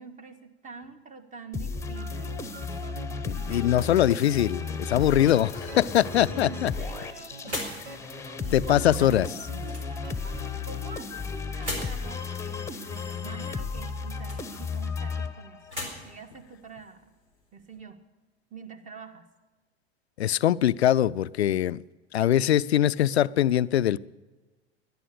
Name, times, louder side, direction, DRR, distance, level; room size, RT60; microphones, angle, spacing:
voice 1, 0.0-2.4 3.7-4.1 6.3-7.8 8.4-9.1 9.6-9.9 10.2-17.1 17.5-18.0 18.5-19.3, right 5 dB, 20° right, 1.6 m, -46 dB
sound 1, 1.5-15.8, left 5 dB, 10° left, 1.0 m, -34 dB
sound 2, 1.9-10.5, right 4 dB, 60° right, 1.4 m, -46 dB
voice 2, 3.3-6.7 8.5-9.3 20.2-21.8 22.1-24.0, left 11 dB, 75° left, 0.5 m, -22 dB
sound 3, 5.0-17.8, left 1 dB, 85° right, 4.3 m, -44 dB
18.0 x 11.0 x 6.7 m
figure-of-eight pair, 80°, 33 cm